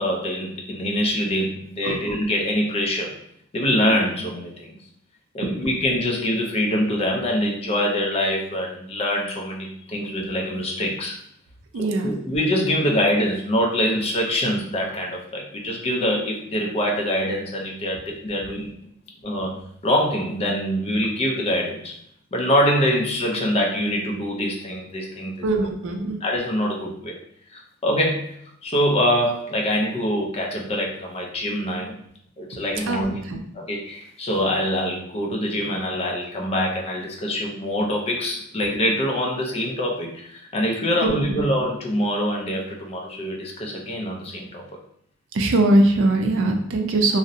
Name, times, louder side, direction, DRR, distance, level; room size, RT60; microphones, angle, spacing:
voice 1, 0.0-3.2 3.5-4.7 5.3-11.2 11.8-18.9 19.2-22.0 22.3-25.4 26.2-27.2 27.5-32.0 32.4-33.2 33.5-44.6, equal, 30° left, 0 dB, 0.4 m, -24 dB
voice 2, 11.7-12.1 25.4-26.2 32.8-33.4 41.0-41.4 45.3-47.2, right 2 dB, 60° right, 4 dB, 0.4 m, -21 dB
2.6 x 2.0 x 2.6 m, 0.69 s
head